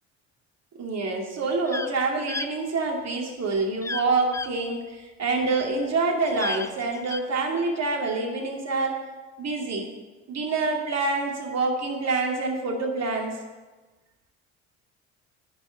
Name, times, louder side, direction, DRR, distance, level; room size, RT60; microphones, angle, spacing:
voice 1, 0.8-9.0 9.4-9.9 10.3-13.4, right 3 dB, 45° right, 1 dB, 2.6 m, -26 dB
sound 1, 1.7-1.9 2.3-2.5 3.8-4.1 4.3-4.5 6.3-7.2, left 3 dB, 10° left, 0.4 m, -32 dB
11.0 x 5.4 x 8.2 m, 1.2 s
hypercardioid pair, 55°, 36 cm